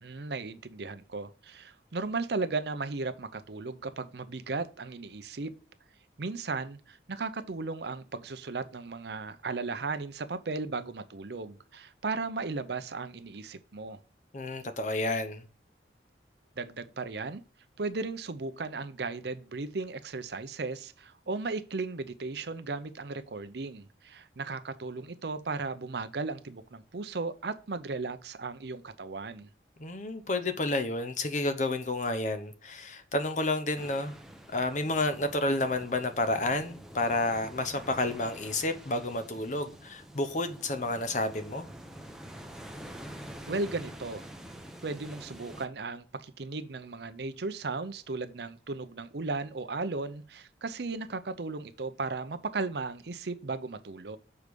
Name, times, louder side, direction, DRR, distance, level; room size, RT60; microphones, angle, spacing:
voice 1, 0.0-5.5 6.2-14.0 16.6-17.4 17.8-29.5 43.5-44.3 44.8-54.2, right 3 dB, 65° right, 0.6 m, -36 dB
voice 2, 14.3-15.4 29.8-34.1 34.5-41.7, left 2 dB, 40° left, 0.8 m, -30 dB
sound 1, 33.8-45.7, equal, 5° right, 0.7 m, -47 dB
6.6 x 4.8 x 5.2 m
head